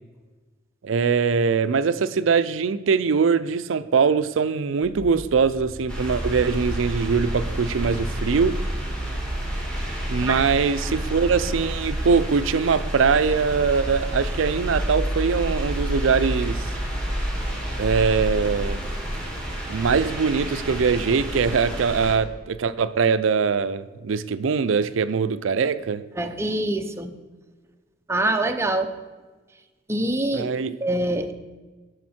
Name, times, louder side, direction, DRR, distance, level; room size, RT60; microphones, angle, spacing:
voice 1, 0.8-8.6 10.1-16.7 17.8-18.9 19.7-26.0 30.3-30.8, right 5 dB, 75° right, 13 dB, 0.4 m, -22 dB
sound 1, 4.8-19.1, equal, 45° left, 1.5 m, -34 dB
sound 2, 5.9-22.1, right 1 dB, 5° left, 2.5 m, -30 dB
voice 2, 26.2-27.1 28.1-28.9 29.9-30.5 30.8-31.3, right 1 dB, 15° right, 6 dB, 0.7 m, -24 dB
10.5 x 6.5 x 4.3 m, 1.3 s
head